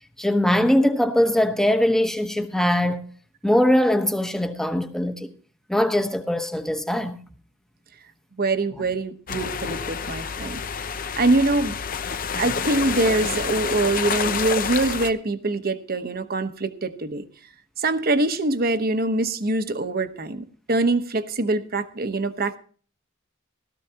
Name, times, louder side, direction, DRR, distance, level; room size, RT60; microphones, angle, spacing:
voice 1, 0.2-3.0 3.4-5.3 5.7-7.2, left 1 dB, ahead, 1.0 m, -21 dB
voice 2, 8.4-10.6 11.2-11.8 12.4-17.2 17.8-22.6, right 2 dB, 50° right, 1.0 m, -24 dB
sound 1, 9.3-15.1, left 6 dB, 45° left, 0.6 m, -28 dB
17.0 x 13.5 x 2.9 m
head